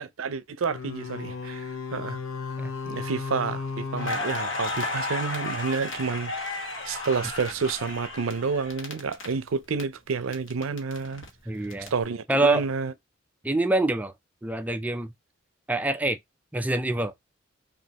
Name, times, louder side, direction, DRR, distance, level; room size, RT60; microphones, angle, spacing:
voice 1, 0.0-2.2 2.9-6.3 6.8-11.3 11.9-12.9, right 5 dB, 80° right, 0.5 m, -29 dB
sound 1, 0.7-5.2, left 5 dB, 90° left, 0.8 m, -35 dB
Crackle, 4.0-9.8 10.1-11.9, left 2 dB, 65° left, 1.2 m, -33 dB
voice 2, 11.5-11.9 12.3-12.6 13.4-14.1 14.4-15.1 15.7-16.2 16.5-17.1, right 2 dB, 10° right, 0.4 m, -25 dB
5.1 x 2.6 x 2.9 m
head